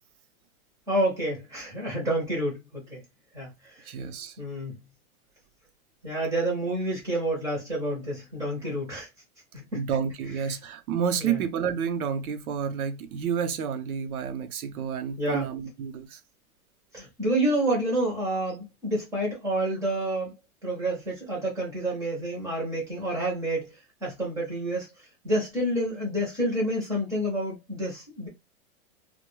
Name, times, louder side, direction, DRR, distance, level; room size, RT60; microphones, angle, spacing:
voice 1, 0.9-3.0 3.3-3.9 4.4-4.7 6.0-9.1 9.5-9.8 11.2-11.4 15.2-15.5 16.9-20.3 20.6-23.8 24.0-24.9 25.2-28.3, right 1 dB, 10° right, 0.5 m, -29 dB
voice 2, 3.9-4.3 9.7-16.2, right 7 dB, 90° right, 0.7 m, -30 dB
2.2 x 2.2 x 3.0 m
supercardioid pair, 160°, 42 cm